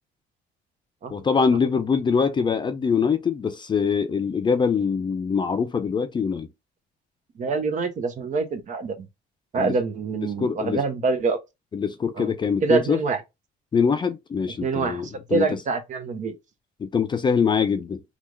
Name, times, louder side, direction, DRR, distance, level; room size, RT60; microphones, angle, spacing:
voice 1, 1.1-6.5 9.6-9.8 10.2-10.8 11.7-13.0 13.7-15.6 16.8-18.0, left 6 dB, 25° left, 0.5 m, -23 dB
voice 2, 7.4-9.1 9.5-11.4 12.2-12.3 12.6-13.2 14.6-15.0 15.3-16.3, right 4 dB, 45° right, 0.9 m, -25 dB
3.4 x 2.4 x 3.1 m
cardioid pair, 110°, 17 cm